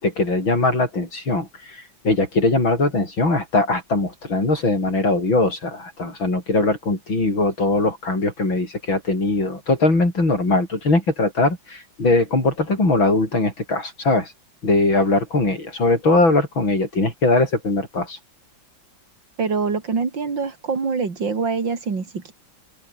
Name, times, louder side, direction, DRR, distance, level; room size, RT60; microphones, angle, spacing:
voice 1, 0.0-14.3 14.6-18.2, left 2 dB, 80° left, 8.4 m, -21 dB
voice 2, 19.4-22.3, right 5 dB, 70° right, 3.9 m, -24 dB
omnidirectional pair, 2.1 m